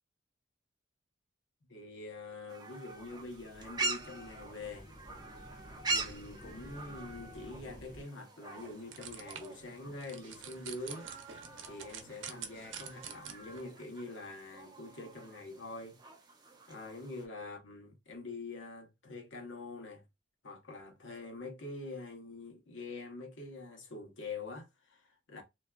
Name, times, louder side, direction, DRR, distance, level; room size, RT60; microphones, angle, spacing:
voice 1, 1.7-4.9 5.9-11.1 11.6-16.0 16.7-20.0 20.4-25.4, left 3 dB, 80° left, 1.0 m, -45 dB
sound 1, 2.5-17.3, right 3 dB, 20° right, 0.7 m, -43 dB
sound 2, 2.9-8.0, equal, 40° left, 1.4 m, -53 dB
sound 3, 8.6-13.6, right 7 dB, 85° right, 0.6 m, -48 dB
3.3 x 2.6 x 2.3 m
head